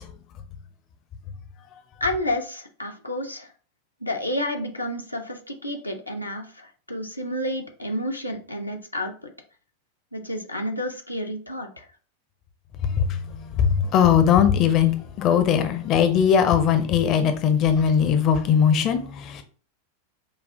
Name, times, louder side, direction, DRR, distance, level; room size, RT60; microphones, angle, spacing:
voice 1, 2.0-3.5 4.0-9.3 10.1-11.9, left 1 dB, 85° left, 0.7 m, -30 dB
voice 2, 12.8-19.4, left 8 dB, 35° left, 0.6 m, -20 dB
5.3 x 2.3 x 3.6 m
figure-of-eight pair, 90°, 0 cm